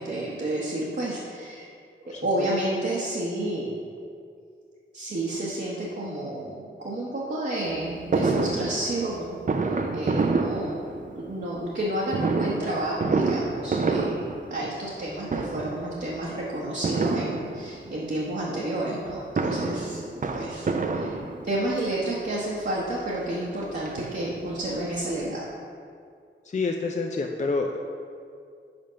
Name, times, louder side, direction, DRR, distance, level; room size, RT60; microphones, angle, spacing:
voice 1, 0.0-1.7 2.2-3.7 4.9-21.2 21.4-25.5, right 1 dB, 55° right, -6 dB, 1.0 m, -30 dB
voice 2, 2.0-2.5 26.4-27.8, left 3 dB, 35° left, 2 dB, 0.4 m, -28 dB
Fireworks, 8.1-11.3 12.1-15.0 15.3-15.9 16.8-17.9 19.1-21.7 22.5-22.6 22.9-23.0 23.3-24.6 24.9-25.0 25.2-25.3, right 3 dB, 40° right, 0.5 m, -28 dB
5.3 x 5.0 x 5.6 m, 2.3 s
wide cardioid pair, 85°, 20 cm